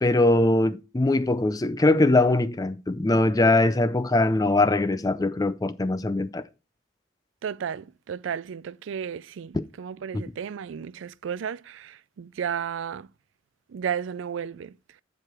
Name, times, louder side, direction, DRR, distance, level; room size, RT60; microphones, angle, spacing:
voice 1, 0.0-6.4 9.5-9.6 10.1-10.2, left 2 dB, 20° left, 0.4 m, -22 dB
voice 2, 7.4-13.1 13.7-14.7, right 8 dB, 70° right, 0.4 m, -33 dB
9.7 x 4.8 x 4.4 m
head